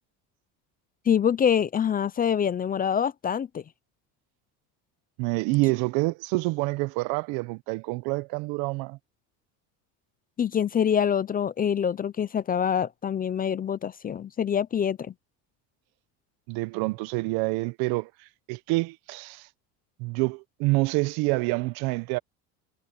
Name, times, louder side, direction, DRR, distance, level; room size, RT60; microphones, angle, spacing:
voice 1, 1.1-3.6 10.4-15.1, left 8 dB, 20° left, 0.5 m, -25 dB
voice 2, 5.2-9.0 16.5-18.1 18.5-19.5 20.0-22.2, right 24 dB, 70° right, 0.9 m, -27 dB
supercardioid pair, 120°, 39 cm